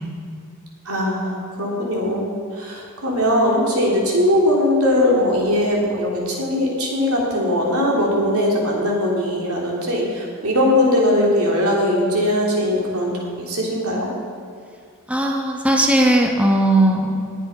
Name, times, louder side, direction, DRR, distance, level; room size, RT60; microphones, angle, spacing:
voice 1, 0.9-14.1, left 1 dB, 80° right, -2 dB, 3.4 m, -20 dB
voice 2, 15.1-17.3, right 1 dB, 5° right, 1 dB, 1.0 m, -17 dB
20.5 x 7.6 x 5.5 m, 2.3 s
head